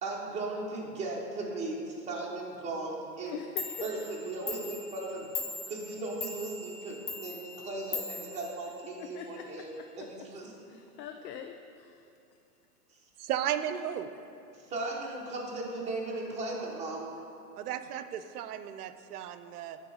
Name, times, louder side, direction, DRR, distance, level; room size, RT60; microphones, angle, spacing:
voice 1, 0.0-3.4 3.8-10.5 14.5-17.1, right 2 dB, 15° right, -3 dB, 0.9 m, -37 dB
voice 2, 3.3-3.9 9.0-10.3 10.7-12.1, left 9 dB, 75° left, 5 dB, 0.6 m, -44 dB
Clock, 3.3-3.4 3.6-9.2, left 4 dB, 50° left, 1.1 m, -40 dB
voice 3, 13.2-14.1 17.6-19.8, right 10 dB, 65° right, 11 dB, 0.5 m, -34 dB
9.0 x 3.1 x 5.3 m, 2.6 s
hypercardioid pair, 140°, 50 cm